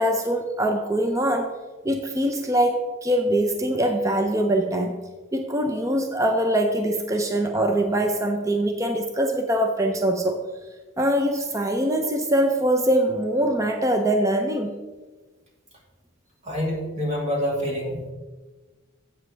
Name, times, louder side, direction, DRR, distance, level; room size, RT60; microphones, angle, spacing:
voice 1, 0.0-1.6 1.8-5.0 5.3-10.4 11.0-14.8, right 1 dB, 15° right, 4 dB, 0.6 m, -23 dB
voice 2, 16.4-18.1, equal, 35° right, -2 dB, 2.5 m, -27 dB
11.5 x 8.1 x 3.3 m, 1.3 s
head